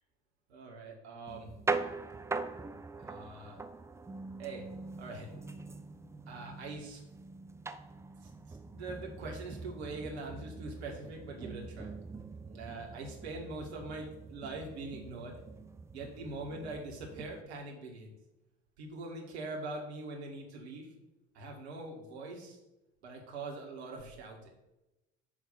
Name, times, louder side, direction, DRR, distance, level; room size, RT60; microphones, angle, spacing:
voice 1, 0.5-1.5 3.0-3.6 4.4-4.7 5.0-5.3 6.3-7.0 8.2-11.9 12.4-15.4 15.9-18.2 18.8-20.9 21.3-22.6 23.0-24.5, right 2 dB, 75° right, 0 dB, 1.9 m, -43 dB
sound 1, 1.3-17.4, right 3 dB, 10° right, 0.4 m, -42 dB
9.3 x 3.1 x 6.7 m, 0.96 s
figure-of-eight pair, 60°, 33 cm